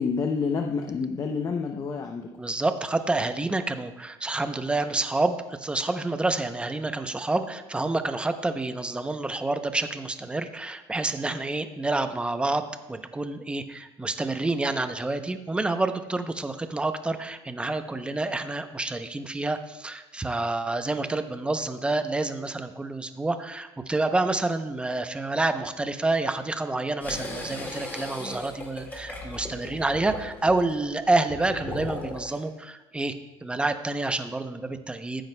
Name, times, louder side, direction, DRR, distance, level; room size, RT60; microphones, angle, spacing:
voice 1, 0.0-2.3, left 5 dB, 35° left, 4 dB, 0.6 m, -28 dB
voice 2, 2.4-33.1 33.4-35.2, right 2 dB, 10° right, 9 dB, 0.6 m, -28 dB
sound 1, 27.0-32.4, left 2 dB, 20° left, 1.9 m, -37 dB
15.0 x 8.9 x 2.2 m, 1.0 s
cardioid pair, 120°, 10 cm